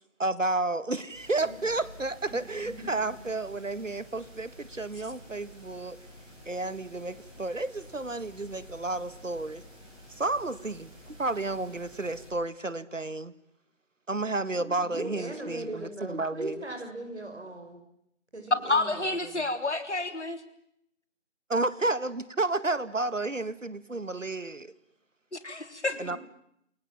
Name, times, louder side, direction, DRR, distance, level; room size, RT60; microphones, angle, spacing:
voice 1, 0.2-6.0 6.5-9.6 10.1-13.3 14.1-16.6 21.5-24.7 26.0-26.2, right 2 dB, 85° right, 15 dB, 1.9 m, -31 dB
sound 1, 1.1-12.3, equal, 5° right, 3.7 m, -50 dB
voice 2, 2.3-3.2 14.4-17.8 18.3-19.5 26.1-26.2, right 1 dB, 60° right, 4 dB, 5.7 m, -40 dB
voice 3, 18.6-20.4 25.3-26.0, left 2 dB, 65° left, 9 dB, 3.7 m, -29 dB
28.5 x 23.0 x 7.5 m, 0.75 s
figure-of-eight pair, 175°, 37 cm